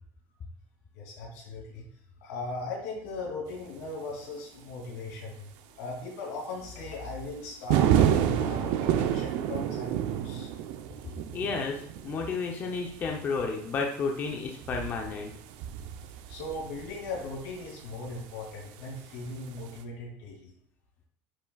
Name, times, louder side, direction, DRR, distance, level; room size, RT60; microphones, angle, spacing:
voice 1, 0.9-1.8 2.2-10.5 16.3-20.5, left 3 dB, 85° left, -2 dB, 3.0 m, -38 dB
sound 1, 7.7-17.8 19.3-19.5, right 10 dB, 60° right, 0.7 m, -29 dB
voice 2, 11.3-15.3, left 4 dB, 30° left, 1 dB, 0.8 m, -32 dB
9.7 x 6.0 x 2.4 m, 0.68 s
cardioid pair, 170°, 7 cm